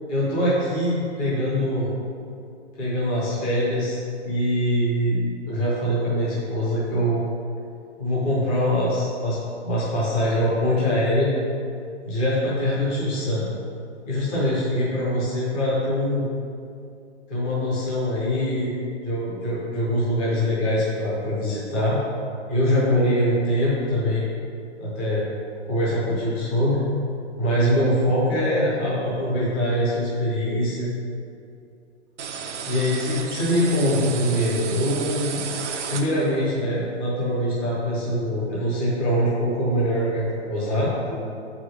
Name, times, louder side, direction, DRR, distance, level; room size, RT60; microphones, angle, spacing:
voice 1, 0.1-1.9 2.8-4.0 4.2-5.2 5.5-7.2 8.0-9.4 9.6-11.3 12.0-13.4 14.0-16.2 17.3-18.7 19.0-22.0 22.5-24.3 24.8-25.3 25.7-26.8 27.4-30.9 32.6-35.4 35.9-41.2, equal, 10° left, -8 dB, 0.6 m, -23 dB
sound 1, 32.2-36.5, right 6 dB, 80° right, 0.8 m, -33 dB
6.0 x 4.9 x 6.3 m, 2.5 s
hypercardioid pair, 175°, 35 cm